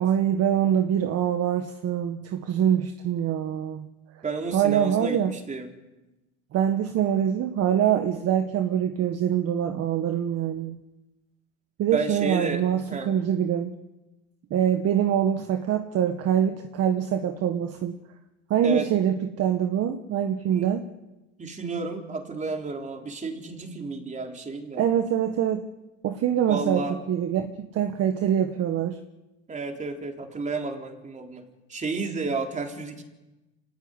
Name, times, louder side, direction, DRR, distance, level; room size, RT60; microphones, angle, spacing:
voice 1, 0.0-3.9 4.5-5.3 6.5-10.8 11.8-13.8 14.5-17.9 18.5-20.8 24.8-25.6 26.0-29.0, right 9 dB, 40° right, 7 dB, 1.6 m, -24 dB
voice 2, 4.2-5.7 11.9-12.6 12.9-13.1 18.6-18.9 20.5-20.7 21.4-24.9 26.5-27.0 29.5-31.4 31.7-33.0, right 4 dB, 20° right, 3 dB, 4.0 m, -31 dB
26.0 x 17.0 x 10.0 m, 1.1 s
supercardioid pair, 125°, 36 cm